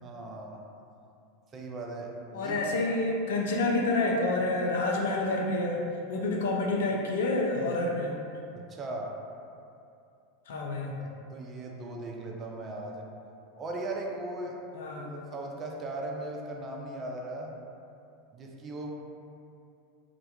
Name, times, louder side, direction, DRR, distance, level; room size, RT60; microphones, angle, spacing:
voice 1, 0.0-0.6 1.5-2.6 8.5-9.1 11.0-13.1 13.5-14.5 15.0-17.5 18.3-18.9, right 2 dB, 30° right, 0 dB, 0.3 m, -38 dB
voice 2, 2.3-8.2 10.5-10.9 14.7-15.2, left 2 dB, 65° left, 0 dB, 0.3 m, -28 dB
2.2 x 2.1 x 2.8 m, 2.6 s
figure-of-eight pair, 85°, 0 cm